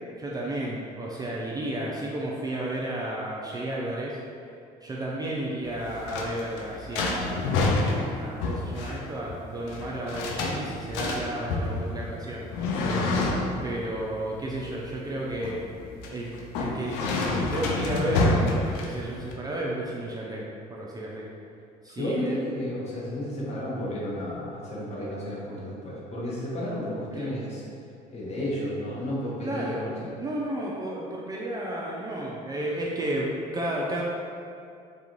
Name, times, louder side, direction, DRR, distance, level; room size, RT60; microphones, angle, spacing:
voice 1, 0.2-4.2 4.8-7.5 8.2-12.5 13.6-15.6 16.1-16.3 16.5-20.4 20.7-21.3 21.8-22.4 27.1-27.3 29.4-29.8 30.2-34.0, right 1 dB, 20° right, -4 dB, 0.3 m, -32 dB
sound 1, 5.7-19.3, left 2 dB, 70° left, 0.4 m, -28 dB
voice 2, 22.0-27.6 28.1-30.1, equal, 35° left, -6 dB, 0.9 m, -32 dB
2.3 x 2.3 x 2.9 m, 2.5 s
hypercardioid pair, 65°, 19 cm